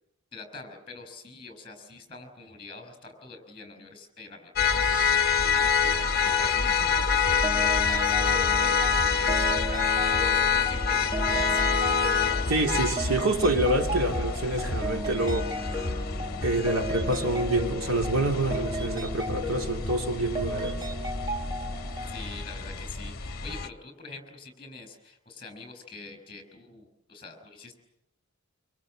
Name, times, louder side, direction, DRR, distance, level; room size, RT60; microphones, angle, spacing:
voice 1, 0.3-11.7 22.1-27.8, left 3 dB, 25° left, 8 dB, 5.9 m, -45 dB
sound 1, 4.6-23.7, left 5 dB, 45° left, 1.2 m, -27 dB
sound 2, 7.4-22.2, equal, 20° right, 1.6 m, -35 dB
voice 2, 12.5-16.0 16.4-20.8, right 2 dB, 85° right, 3 dB, 3.0 m, -27 dB
25.5 x 25.0 x 7.7 m, 0.83 s
head